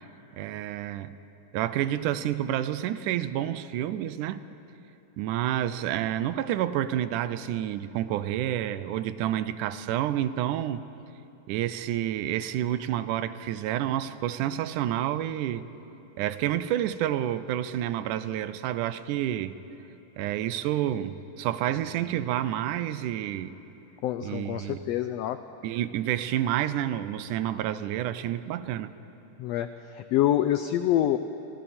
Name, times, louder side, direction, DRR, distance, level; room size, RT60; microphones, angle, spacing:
voice 1, 0.3-1.1 1.5-4.4 5.2-10.8 11.5-15.7 16.2-19.5 20.2-23.5 24.2-24.8 25.6-28.9, right 12 dB, 85° right, 13 dB, 2.2 m, -29 dB
voice 2, 24.0-25.4 29.4-31.2, left 12 dB, 90° left, 10 dB, 1.4 m, -26 dB
29.5 x 23.0 x 4.3 m, 2.9 s
omnidirectional pair, 3.5 m